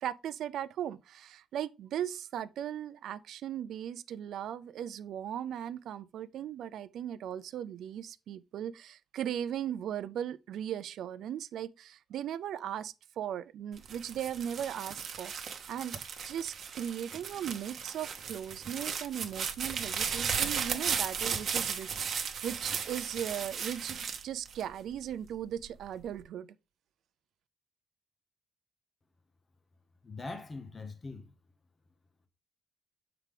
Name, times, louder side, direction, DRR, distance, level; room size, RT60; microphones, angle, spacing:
voice 1, 0.0-16.0 16.2-26.5, right 10 dB, 80° right, 0.4 m, -38 dB
sound 1, 13.8-25.1 25.7-26.2, right 7 dB, 50° right, 1.0 m, -36 dB
voice 2, 30.0-31.3, left 3 dB, 25° left, 0.9 m, -42 dB
6.6 x 4.7 x 3.6 m
cardioid pair, 150°, 0 cm